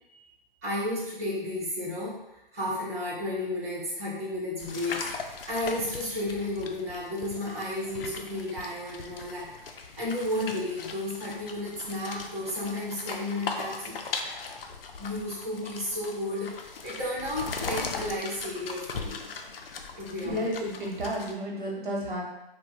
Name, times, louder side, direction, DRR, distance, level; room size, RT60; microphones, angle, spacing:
voice 1, 0.6-2.2 2.5-13.9 15.0-19.3 20.0-20.5, left 1 dB, 15° right, -12 dB, 0.5 m, -33 dB
sound 1, 4.6-21.3, left 4 dB, 75° left, 0.5 m, -39 dB
voice 2, 20.2-22.3, equal, 55° right, -2 dB, 0.9 m, -32 dB
2.7 x 2.2 x 3.1 m, 0.92 s
hypercardioid pair, 160°, 29 cm